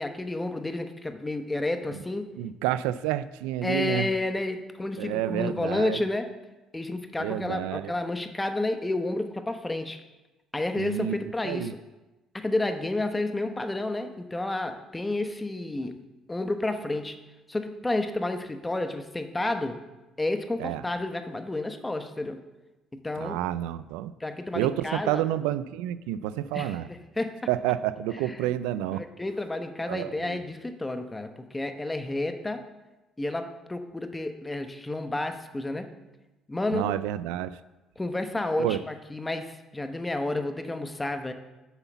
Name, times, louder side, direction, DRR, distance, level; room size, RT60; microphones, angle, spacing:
voice 1, 0.0-2.3 3.6-6.3 6.7-10.0 10.5-11.7 12.3-16.0 16.3-17.2 17.5-19.8 20.2-22.4 22.9-23.4 24.2-25.2 26.5-27.4 28.4-28.5 28.9-32.7 33.2-35.9 36.5-36.9 38.0-41.3, left 2 dB, 15° left, 7 dB, 1.1 m, -31 dB
voice 2, 2.4-4.1 5.0-6.0 7.2-7.9 10.8-11.2 11.4-11.7 20.6-20.8 23.2-24.1 24.5-26.9 27.5-29.0 29.9-30.4 36.7-37.6 38.6-38.8, right 13 dB, 85° right, 15 dB, 0.3 m, -29 dB
8.0 x 5.7 x 7.0 m, 1.1 s
supercardioid pair, 65°, 0 cm